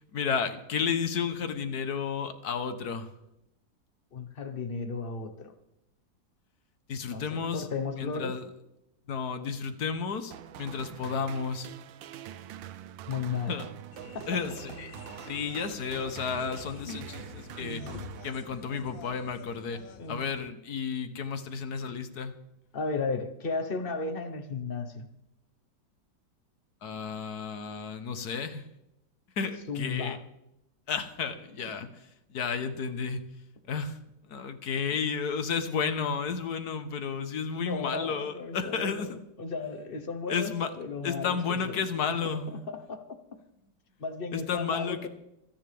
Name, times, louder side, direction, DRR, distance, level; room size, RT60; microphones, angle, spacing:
voice 1, 0.1-3.1 6.9-7.7 8.0-8.5 9.1-11.7 13.5-13.7 14.3-15.0 15.3-17.8 18.2-22.3 26.8-28.7 29.4-30.2 30.9-31.9 32.3-33.2 33.7-34.0 34.3-39.2 40.3-40.7 41.0-42.7 44.3-45.1, left 6 dB, 60° left, 10 dB, 1.6 m, -32 dB
voice 2, 4.1-5.5 7.1-8.3 13.1-13.5 14.1-14.4 16.9-17.0 17.6-17.9 20.0-20.2 22.7-25.1 29.7-30.2 37.5-41.8 42.7-43.0 44.0-45.1, left 4 dB, 35° left, 8 dB, 1.2 m, -35 dB
sound 1, 10.3-18.9, right 11 dB, 90° right, 1.4 m, -45 dB
sound 2, 13.9-20.5, left 9 dB, 85° left, 1.5 m, -48 dB
26.0 x 10.0 x 3.5 m, 0.86 s
omnidirectional pair, 2.0 m